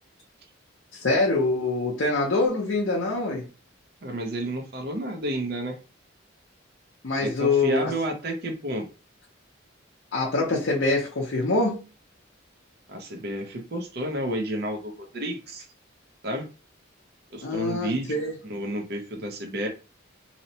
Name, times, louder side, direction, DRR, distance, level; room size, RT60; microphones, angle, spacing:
voice 1, 0.9-3.4 7.0-7.9 10.1-11.8 17.4-18.3, left 2 dB, 65° left, -2 dB, 0.6 m, -24 dB
voice 2, 4.0-5.8 7.2-8.8 12.9-15.7 16.2-16.5 17.3-18.2 18.4-19.7, right 1 dB, 55° right, 3 dB, 0.5 m, -31 dB
2.7 x 2.0 x 2.7 m, 0.33 s
head